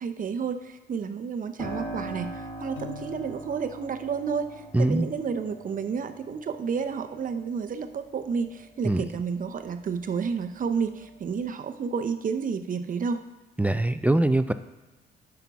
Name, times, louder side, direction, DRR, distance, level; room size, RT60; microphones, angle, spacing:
voice 1, 0.0-13.2, right 6 dB, 45° right, 8 dB, 0.7 m, -31 dB
Piano, 1.6-10.0 10.4-11.5, right 1 dB, 20° left, 3.4 m, -42 dB
Piano 2, 2.8-3.7, left 16 dB, 80° left, 0.6 m, -43 dB
voice 2, 4.7-5.1 8.8-9.0 13.6-14.5, right 1 dB, 5° right, 11 dB, 0.3 m, -22 dB
9.1 x 5.9 x 4.7 m, 1.1 s
cardioid pair, 90°, 20 cm